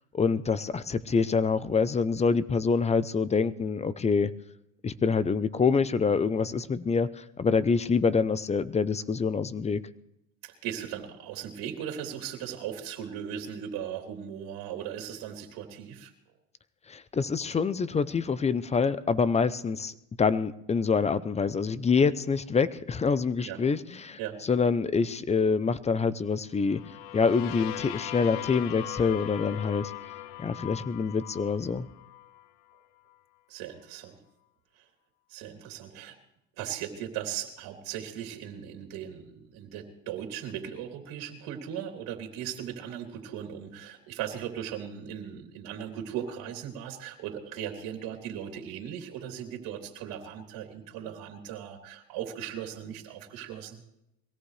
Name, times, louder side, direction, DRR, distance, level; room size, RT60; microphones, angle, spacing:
voice 1, 0.1-4.3 4.8-9.8 16.9-26.8 27.1-29.9 30.4-31.9, left 5 dB, 15° left, 16 dB, 0.6 m, -26 dB
voice 2, 10.4-16.1 23.4-23.6 24.2-24.4 33.5-34.1 34.7-34.8 35.3-36.2 36.6-53.8, right 9 dB, 55° right, 3 dB, 3.1 m, -38 dB
sound 1, 26.6-32.5, left 13 dB, 65° left, 0.9 m, -40 dB
23.0 x 17.0 x 3.3 m, 0.82 s
supercardioid pair, 110°, 40 cm